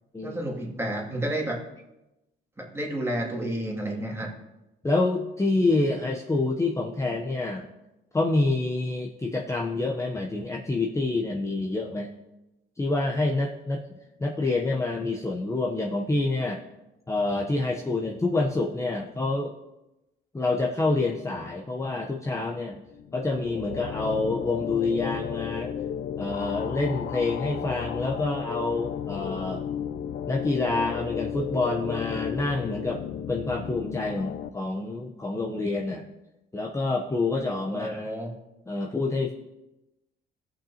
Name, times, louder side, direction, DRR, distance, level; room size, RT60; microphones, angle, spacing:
voice 1, 0.2-1.6 2.6-4.3 37.7-38.3, right 1 dB, 15° right, -2 dB, 2.4 m, -30 dB
voice 2, 4.8-7.7 8.1-12.1 12.8-13.8 14.2-16.6 17.1-19.5 20.3-22.8 23.1-25.7 26.2-29.6 30.3-33.0 33.3-36.1 36.5-38.1 38.7-39.3, left 2 dB, 15° left, -1 dB, 0.8 m, -27 dB
sound 1, 22.9-34.5, left 9 dB, 55° left, 0.4 m, -34 dB
sound 2, 23.7-23.9 24.7-25.2 25.4-25.9 26.6-27.0 27.6-28.1, left 1 dB, 80° left, 2.4 m, -47 dB
16.5 x 6.0 x 2.9 m, 0.97 s
cardioid pair, 90°, 20 cm